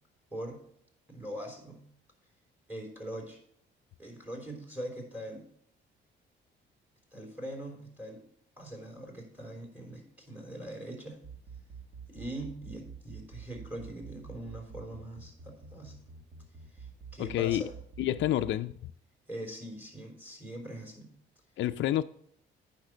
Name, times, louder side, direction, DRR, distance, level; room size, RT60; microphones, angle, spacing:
voice 1, 1.1-1.8 2.7-3.4 4.0-5.5 7.1-8.2 8.6-11.2 12.1-16.0 16.7-17.7 19.3-21.1, right 1 dB, 10° right, 3.5 m, -42 dB
sound 1, 11.1-18.5, right 6 dB, 65° right, 2.2 m, -46 dB
voice 2, 17.2-17.6 18.0-18.8 21.6-22.0, left 13 dB, 70° left, 0.4 m, -28 dB
9.1 x 5.9 x 6.1 m
cardioid pair, 90°, 20 cm